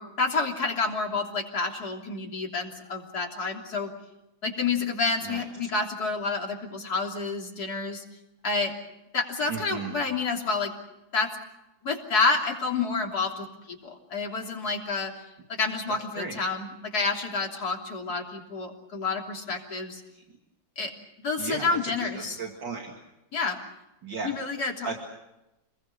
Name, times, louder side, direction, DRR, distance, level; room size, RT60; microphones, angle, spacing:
voice 1, 0.0-3.9 4.4-8.0 8.4-8.7 9.1-10.7 11.1-11.3 11.8-15.2 15.5-20.0 20.8-20.9 21.2-22.4 23.3-23.6 24.2-24.9, left 4 dB, 55° left, 1 dB, 3.8 m, -29 dB
voice 2, 9.5-9.9 16.2-16.4 21.4-22.1 22.4-22.9 24.0-24.3 24.8-25.0, right 5 dB, 70° right, 2 dB, 3.0 m, -35 dB
28.5 x 21.0 x 6.8 m, 0.93 s
omnidirectional pair, 2.0 m